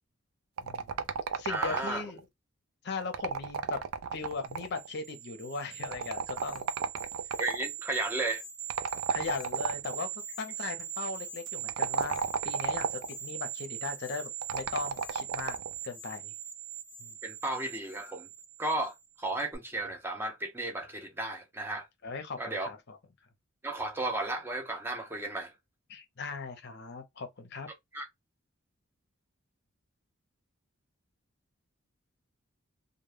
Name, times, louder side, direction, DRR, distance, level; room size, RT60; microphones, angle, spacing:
voice 1, 0.6-1.0 1.3-2.3 2.8-3.8 4.1-6.7 9.1-12.2 12.4-15.6 15.8-16.3 17.0-17.1 22.0-23.0 25.9-27.7, left 4 dB, 50° left, 0.6 m, -38 dB
sound 1, 0.6-2.2 3.0-4.9 5.8-7.7 8.7-10.0 11.6-13.2 14.4-15.7, right 6 dB, 80° right, 0.4 m, -33 dB
voice 2, 1.5-2.0 7.3-8.4 17.2-18.3 18.6-21.9 22.4-22.7 23.6-25.5 27.9-28.1, right 2 dB, 10° right, 0.5 m, -34 dB
sound 2, 4.4-19.1 19.4-19.6, right 10 dB, 55° right, 0.7 m, -41 dB
2.1 x 2.1 x 3.2 m
head